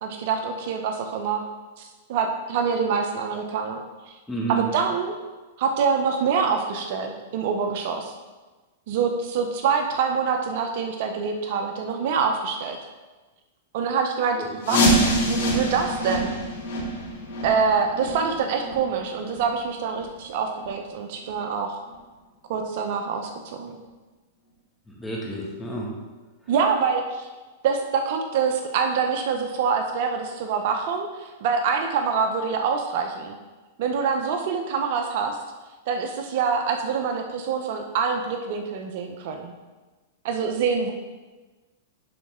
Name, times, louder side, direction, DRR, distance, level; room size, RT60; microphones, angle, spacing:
voice 1, 0.0-1.5 1.8-3.8 4.5-5.2 5.6-8.1 8.9-12.8 13.7-15.0 15.3-16.4 17.4-21.8 22.5-23.8 26.5-27.3 27.6-33.4 33.8-35.4 35.9-39.5 40.2-40.9, right 6 dB, 60° right, 4 dB, 0.8 m, -25 dB
voice 2, 4.3-4.6 14.7-14.9 24.9-25.9, right 3 dB, 5° left, -4 dB, 1.8 m, -30 dB
sound 1, 14.6-20.2 20.5-20.7 21.2-21.3 21.9-22.0 22.6-22.7, equal, 75° left, 1.9 m, -26 dB
10.5 x 4.2 x 3.7 m, 1.2 s
hypercardioid pair, 125°, 0 cm